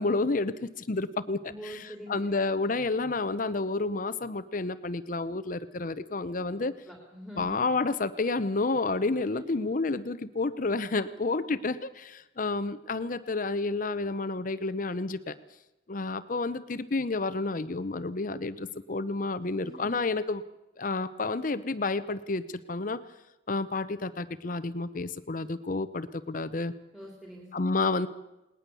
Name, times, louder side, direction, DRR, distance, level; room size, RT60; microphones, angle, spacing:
voice 1, 0.0-6.7 7.4-15.4 15.9-20.4 20.8-23.0 23.5-26.7 27.5-28.1, left 3 dB, 45° left, 12 dB, 0.7 m, -30 dB
voice 2, 1.5-2.2 6.6-7.6 9.3-9.4 19.6-20.0 26.9-27.5, equal, 5° right, 0 dB, 2.9 m, -44 dB
19.5 x 19.5 x 6.9 m, 0.95 s
head